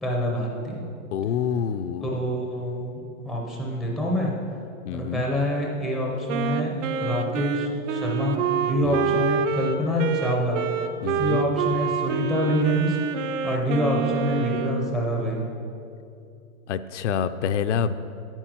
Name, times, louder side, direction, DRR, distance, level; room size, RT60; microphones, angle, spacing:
voice 1, 0.0-0.9 2.0-4.3 4.9-10.7 11.1-13.0 13.4-15.5, equal, ahead, -2 dB, 0.5 m, -26 dB
voice 2, 1.1-2.1 4.9-5.2 8.8-9.2 11.0-11.4 16.7-18.0, left 8 dB, 60° left, 10 dB, 0.5 m, -27 dB
Wind instrument woodwind instrument, 6.3-14.9, right 6 dB, 65° right, 0.8 m, -27 dB
9.0 x 8.4 x 6.0 m, 2.6 s
hypercardioid pair, 155°, 40 cm